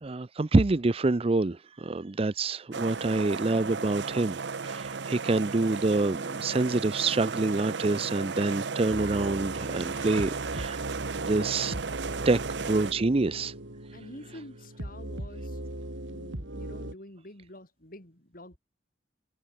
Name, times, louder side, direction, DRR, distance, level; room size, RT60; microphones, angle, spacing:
voice 1, 0.0-4.4 4.6-10.8 11.2-11.7 12.2-12.4 12.7-13.5, right 2 dB, 30° right, 0.5 m, -26 dB
sound 1, 2.7-12.9, right 5 dB, 65° right, 0.7 m, -35 dB
sound 2, 8.9-16.9, right 1 dB, 85° right, 4.1 m, -39 dB
voice 2, 13.9-15.6 16.0-18.6, left 1 dB, 50° left, 5.1 m, -47 dB
head